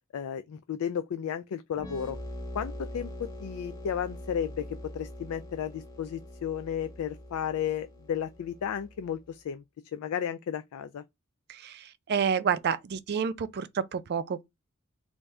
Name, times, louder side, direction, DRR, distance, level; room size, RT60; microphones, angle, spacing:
voice 1, 0.1-2.2 2.5-4.7 4.9-9.6 9.9-11.0, left 8 dB, 85° left, 0.3 m, -33 dB
sound 1, 1.7-9.3, equal, 15° left, 0.8 m, -43 dB
voice 2, 11.5-14.4, right 7 dB, 50° right, 0.4 m, -29 dB
3.5 x 2.6 x 3.2 m
head